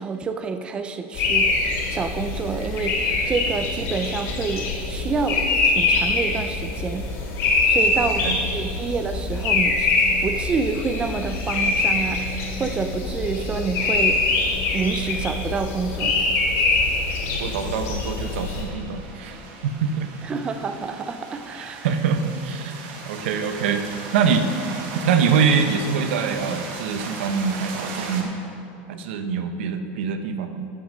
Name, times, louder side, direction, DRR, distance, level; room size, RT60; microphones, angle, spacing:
voice 1, 0.0-7.1 7.6-9.9 10.2-14.2 14.7-16.3 20.2-21.9, right 5 dB, 15° right, 7 dB, 0.4 m, -28 dB
sound 1, 1.1-18.6, left 3 dB, 50° left, 2.5 m, -24 dB
voice 2, 7.8-8.4 17.3-20.1 21.6-23.8 24.1-24.5 25.0-28.3 28.9-30.7, right 6 dB, 90° right, 8 dB, 0.9 m, -24 dB
sound 2, 13.8-28.2, right 4 dB, 55° right, 1.7 m, -39 dB
14.5 x 6.3 x 5.3 m, 2.6 s
supercardioid pair, 160°, 6 cm